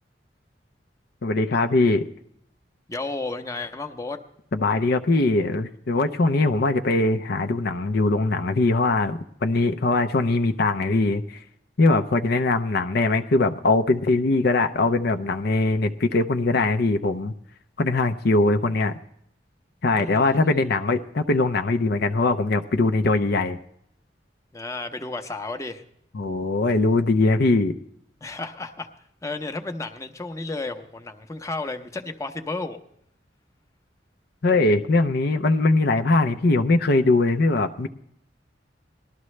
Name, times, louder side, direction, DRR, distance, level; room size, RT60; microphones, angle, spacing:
voice 1, 1.2-2.0 4.5-11.4 11.8-17.3 17.8-18.9 19.8-23.6 26.1-27.7 34.4-37.9, left 2 dB, 60° left, 7 dB, 0.6 m, -21 dB
voice 2, 2.9-4.2 20.0-20.6 24.5-25.8 28.2-32.8, left 3 dB, 20° left, 5 dB, 0.8 m, -33 dB
19.0 x 12.0 x 3.2 m, 0.70 s
head